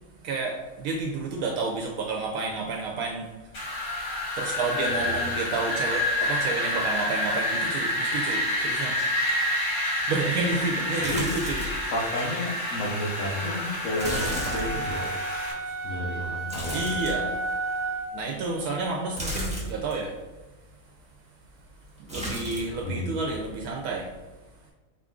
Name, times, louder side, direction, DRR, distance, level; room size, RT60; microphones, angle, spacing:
voice 1, 0.2-4.1 4.4-9.0 10.1-11.9 15.6-15.7 16.7-17.4 18.1-20.2 22.0-24.2, right 3 dB, 80° right, -1 dB, 1.0 m, -30 dB
Wind, 3.5-15.5, left 1 dB, 85° left, 2.1 m, -28 dB
voice 2, 5.0-5.3 8.9-10.0 11.0-11.3 11.9-15.1 15.8-16.9 22.8-23.2, left 1 dB, 65° left, -2 dB, 1.1 m, -32 dB
sound 1, 11.0-11.9 12.3-12.4 14.0-15.3 16.5-17.6 19.2-20.0 22.1-22.8 23.1-23.7 24.0-24.2, equal, 5° right, 0.8 m, -34 dB
sound 2, 13.9-18.2, right 3 dB, 40° left, 1.3 m, -32 dB
4.5 x 2.5 x 3.6 m, 1.2 s
omnidirectional pair, 1.5 m